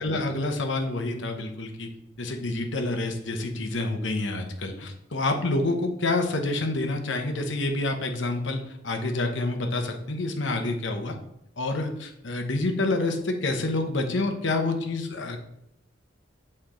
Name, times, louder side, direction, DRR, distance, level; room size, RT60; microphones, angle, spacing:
voice 1, 0.0-1.9 2.2-11.2 11.6-15.4, left 2 dB, 75° left, 5 dB, 0.9 m, -28 dB
6.7 x 4.3 x 3.8 m, 0.79 s
head